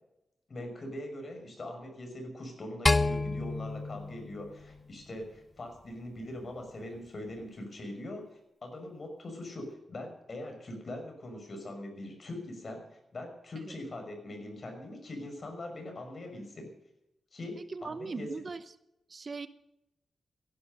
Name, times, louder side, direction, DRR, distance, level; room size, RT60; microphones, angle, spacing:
voice 1, 0.5-16.7 17.3-18.3, left 1 dB, 50° left, 4 dB, 5.9 m, -42 dB
sound 1, 2.9-5.2, left 2 dB, 25° left, 0.8 m, -30 dB
voice 2, 17.6-18.6 19.1-19.5, right 4 dB, 45° right, 13 dB, 0.9 m, -39 dB
16.5 x 11.5 x 6.7 m, 0.86 s
cardioid pair, 65°, 0 cm